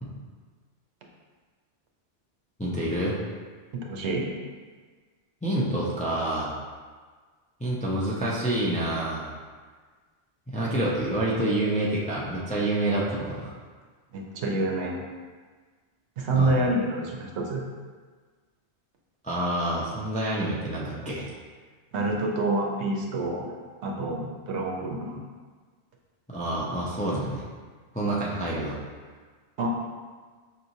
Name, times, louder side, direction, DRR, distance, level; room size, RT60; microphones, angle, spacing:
voice 1, 2.6-3.2 5.4-6.5 7.6-9.3 10.5-13.5 16.3-16.5 19.2-21.3 26.3-27.4 27.9-28.8, right 1 dB, 15° left, -6 dB, 0.3 m, -27 dB
voice 2, 3.7-4.3 14.1-15.0 16.2-17.6 21.9-23.5 23.8-25.2 29.6-29.7, right 2 dB, 80° right, 0 dB, 0.9 m, -27 dB
5.3 x 2.9 x 2.7 m, 1.5 s
omnidirectional pair, 1.1 m